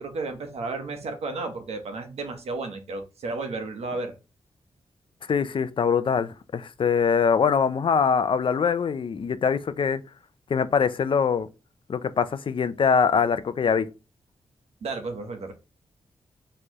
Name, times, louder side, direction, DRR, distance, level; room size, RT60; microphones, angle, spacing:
voice 1, 0.0-4.1 14.8-15.5, right 3 dB, 80° right, 1.1 m, -33 dB
voice 2, 5.3-10.0 10.5-11.5 11.9-13.9, left 6 dB, 55° left, 0.5 m, -23 dB
4.4 x 3.2 x 2.9 m
cardioid pair, 80°, 11 cm